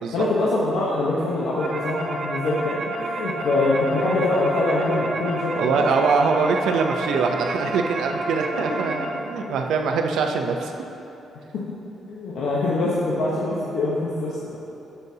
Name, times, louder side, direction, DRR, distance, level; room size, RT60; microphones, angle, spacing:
voice 1, 0.1-5.8 8.5-8.8 9.4-9.5 11.5-11.6 12.1-14.6, left 2 dB, 75° left, -6 dB, 0.9 m, -24 dB
sound 1, 1.2-9.1, right 2 dB, 35° right, 0.6 m, -30 dB
voice 2, 5.5-10.7, right 4 dB, 75° right, 3 dB, 0.6 m, -23 dB
9.4 x 6.8 x 2.8 m, 2.9 s
cardioid pair, 170°, 0 cm